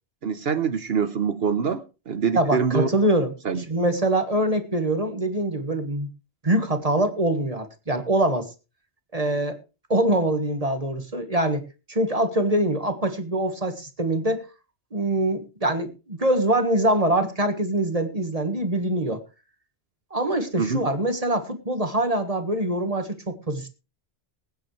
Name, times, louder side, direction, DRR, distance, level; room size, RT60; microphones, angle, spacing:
voice 1, 0.2-2.9 3.4-3.6 20.6-20.8, right 6 dB, 65° right, 11 dB, 1.1 m, -25 dB
voice 2, 2.3-3.3 3.7-6.1 6.4-8.5 9.1-9.6 9.9-11.6 11.9-14.5 14.9-19.2 20.1-23.7, right 1 dB, 35° right, 7 dB, 1.6 m, -24 dB
20.5 x 9.4 x 3.2 m, 0.31 s
omnidirectional pair, 1.1 m